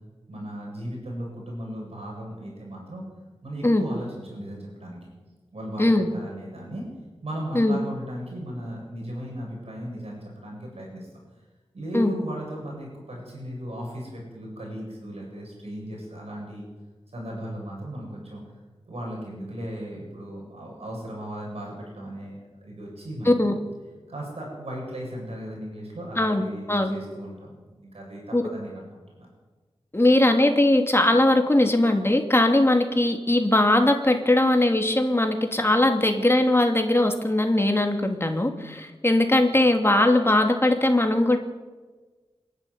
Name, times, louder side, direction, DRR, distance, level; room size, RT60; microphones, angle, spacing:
voice 1, 0.3-3.0 3.4-5.1 5.5-6.9 7.2-11.1 11.7-16.6 17.1-18.4 18.9-23.6 24.1-29.3, equal, 75° right, -2 dB, 7.4 m, -36 dB
voice 2, 5.8-6.1 7.5-7.8 11.9-12.1 23.2-23.5 26.2-27.0 28.3-28.4 29.9-41.4, left 1 dB, 25° left, 4 dB, 3.0 m, -20 dB
27.0 x 11.5 x 9.6 m, 1.3 s
wide cardioid pair, 75°, 10 cm